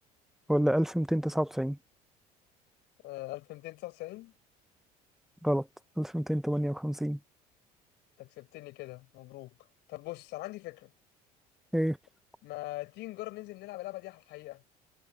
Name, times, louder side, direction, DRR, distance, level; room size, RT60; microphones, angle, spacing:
voice 1, 0.5-1.8 5.4-5.6 6.0-7.2 11.7-12.0, equal, ahead, 1.4 m, -28 dB
voice 2, 3.0-4.3 8.2-9.6 9.9-10.9 12.4-14.6, left 19 dB, 60° left, 5.9 m, -42 dB
figure-of-eight pair, 65°, 20 cm